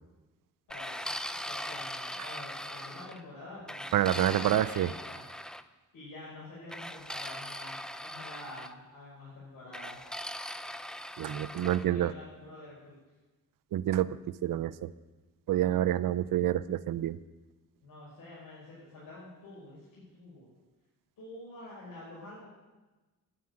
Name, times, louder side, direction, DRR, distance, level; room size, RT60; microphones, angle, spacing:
voice 1, 0.7-1.1 1.4-5.2 5.9-10.1 11.2-13.0 17.8-20.5 21.2-22.5, left 2 dB, 80° left, -8 dB, 5.5 m, -48 dB
sound 1, 0.7-3.2 3.7-5.6 6.7-8.7 9.7-11.9, equal, ahead, 0.4 m, -40 dB
voice 2, 3.9-4.9 11.2-12.1 13.7-14.9 15.5-17.2, right 12 dB, 70° right, 15 dB, 0.6 m, -28 dB
9.7 x 9.4 x 8.6 m, 1.2 s
cardioid pair, 115°, 34 cm